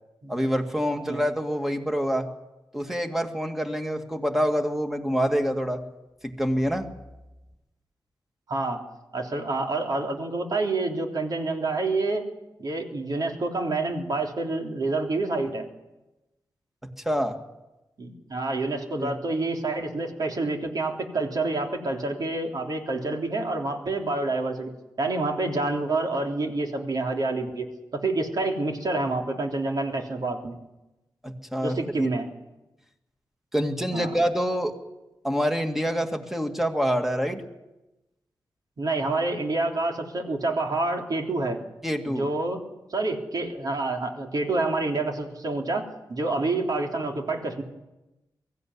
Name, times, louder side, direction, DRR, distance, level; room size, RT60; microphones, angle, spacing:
voice 1, 0.3-2.3 2.7-5.8 6.2-6.9 17.1-17.4 19.0-19.1 31.2-32.1 33.5-34.7 35.2-37.4 41.8-42.3, equal, 5° right, 4 dB, 2.2 m, -26 dB
voice 2, 8.5-8.8 9.1-12.2 12.6-15.6 18.0-24.7 25.0-27.7 27.9-30.6 31.6-32.3 33.9-34.2 38.8-41.6 42.1-42.6 42.9-45.8 46.1-47.6, right 2 dB, 55° right, 2 dB, 3.4 m, -28 dB
23.5 x 15.5 x 9.8 m, 1.0 s
wide cardioid pair, 135°, 8 cm